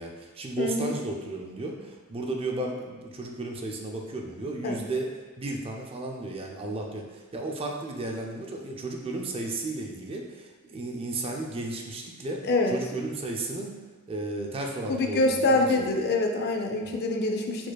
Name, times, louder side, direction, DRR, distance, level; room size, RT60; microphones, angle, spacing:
voice 1, 0.0-5.1 5.4-13.7 14.1-16.0 16.8-17.0, right 2 dB, 25° right, 1 dB, 0.4 m, -34 dB
voice 2, 0.6-0.9 4.6-4.8 12.4-12.7 14.9-17.7, left 2 dB, 50° left, 3 dB, 0.5 m, -25 dB
4.8 x 4.2 x 2.3 m, 1.3 s
head